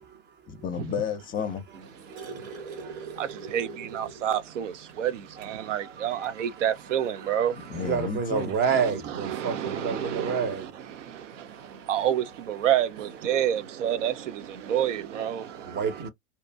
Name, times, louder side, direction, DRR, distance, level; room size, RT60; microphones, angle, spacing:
voice 1, 0.5-1.6 7.7-8.6, left 7 dB, 25° left, 0.6 m, -31 dB
sound 1, 1.6-4.5 4.9-5.0 5.4-5.6 6.7-6.8, right 5 dB, 65° right, 1.2 m, -41 dB
voice 2, 2.1-3.5 5.4-6.6 7.2-7.5 7.7-10.9 11.5-11.9 15.4-16.1, right 6 dB, 30° right, 0.7 m, -31 dB
voice 3, 3.9-4.7 5.0-5.1 5.5-7.5 8.7-10.4 11.9-14.1 14.7-15.4, right 10 dB, 85° right, 0.6 m, -27 dB
2.8 x 2.3 x 2.3 m
hypercardioid pair, 105°, 36 cm